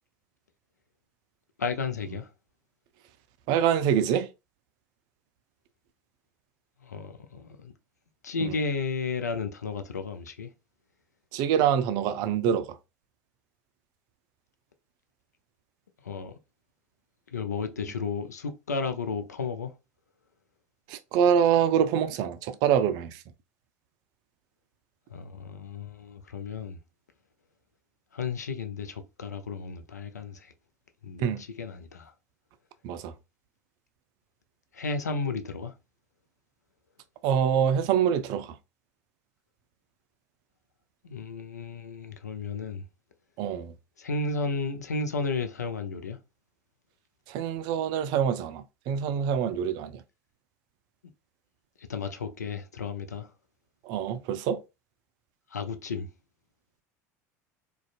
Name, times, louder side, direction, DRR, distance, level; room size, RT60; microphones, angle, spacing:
voice 1, 1.6-2.3 6.8-7.7 8.2-10.5 16.0-16.4 17.3-19.7 25.1-26.8 28.1-30.5 31.0-32.1 34.7-35.7 41.0-42.8 44.0-46.2 51.8-53.3 55.5-56.1, left 4 dB, 85° left, 0.4 m, -33 dB
voice 2, 3.5-4.3 8.4-8.5 11.3-12.7 20.9-23.2 31.2-31.4 32.8-33.1 37.2-38.6 43.4-43.7 47.3-50.0 53.9-54.6, right 8 dB, 55° right, 0.4 m, -25 dB
2.5 x 2.2 x 2.4 m
figure-of-eight pair, 75°, 9 cm